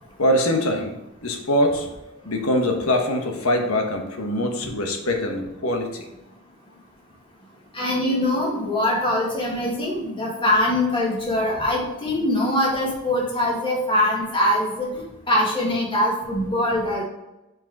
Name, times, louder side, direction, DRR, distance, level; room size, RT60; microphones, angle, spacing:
voice 1, 0.2-1.9 2.2-6.0, left 1 dB, 75° left, 3 dB, 1.2 m, -23 dB
voice 2, 7.7-17.0, left 1 dB, 25° left, -4 dB, 2.0 m, -23 dB
5.4 x 5.0 x 4.6 m, 0.96 s
head